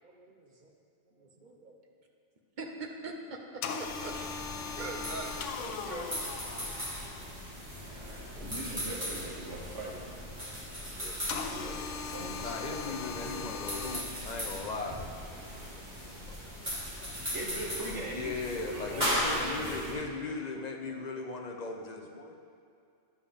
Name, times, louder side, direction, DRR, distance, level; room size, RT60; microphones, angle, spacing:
voice 1, 0.0-0.7 1.2-1.8 2.6-3.4 3.8-4.1 4.7-6.1 7.9-9.4 10.9-11.2 11.6-12.3 12.7-14.1 14.4-14.7 16.9-17.2 20.9-21.3 22.3-22.4, right 3 dB, 45° right, 2 dB, 0.9 m, -45 dB
sound 1, 3.6-7.6 11.3-14.0, left 6 dB, 80° left, 1.0 m, -39 dB
sound 2, 3.8-19.9, equal, 25° right, 2.5 m, -38 dB
voice 2, 8.4-9.9 11.4-11.7 12.0-12.8 16.0-16.1 17.3-20.3, right 1 dB, 75° right, -2 dB, 1.6 m, -40 dB
voice 3, 12.4-15.0 15.7-17.1 18.1-22.4, left 4 dB, 45° left, 3 dB, 0.6 m, -39 dB
11.0 x 7.0 x 3.5 m, 2.3 s
omnidirectional pair, 1.2 m